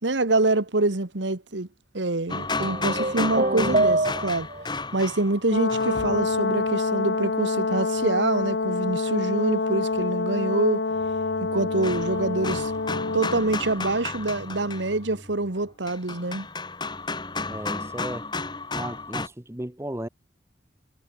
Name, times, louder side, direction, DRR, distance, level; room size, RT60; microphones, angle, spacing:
voice 1, 0.0-1.7 1.9-4.5 4.9-10.8 11.4-12.7 13.1-16.5, right 2 dB, 90° right, 1.6 m, -25 dB
sound 1, 2.3-6.6 9.1-9.2 10.9-19.3, left 3 dB, 25° left, 4.3 m, -33 dB
sound 2, 2.6-4.6, right 2 dB, 40° right, 1.4 m, -24 dB
Brass instrument, 5.5-13.4, left 3 dB, 80° left, 1.0 m, -27 dB
voice 2, 17.5-18.3 18.7-20.1, right 1 dB, 15° right, 0.9 m, -35 dB
head